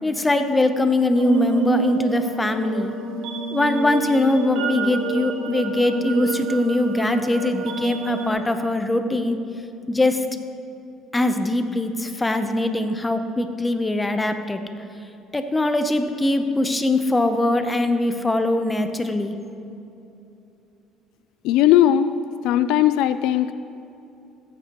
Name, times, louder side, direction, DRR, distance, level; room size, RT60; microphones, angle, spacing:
voice 1, 0.0-2.9 3.5-9.4 9.9-10.2 11.1-14.6 15.3-19.4, left 2 dB, 10° left, 8 dB, 0.6 m, -22 dB
sound 1, 1.1-8.3, right 6 dB, 80° right, 1.0 m, -28 dB
voice 2, 21.4-22.1 22.4-23.5, left 12 dB, 75° left, 13 dB, 0.3 m, -18 dB
14.5 x 9.1 x 3.0 m, 2.8 s
cardioid pair, 120°, 0 cm